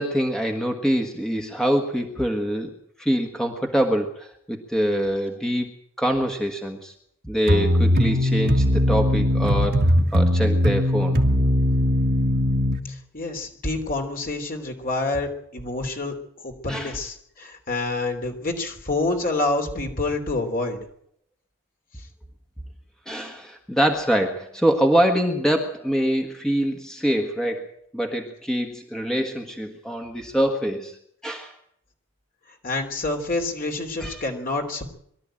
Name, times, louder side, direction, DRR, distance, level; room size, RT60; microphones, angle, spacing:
voice 1, 0.0-2.7 3.0-5.7 6.0-6.9 7.3-11.2 16.7-17.0 23.1-31.0 31.2-31.5 34.0-34.2, equal, 5° left, 3 dB, 1.5 m, -24 dB
sound 1, 7.5-12.8, equal, 50° right, 2.1 m, -20 dB
voice 2, 12.9-16.1 16.4-20.8 32.6-34.8, left 2 dB, 40° left, 3 dB, 3.2 m, -27 dB
23.0 x 12.5 x 8.9 m, 0.71 s
head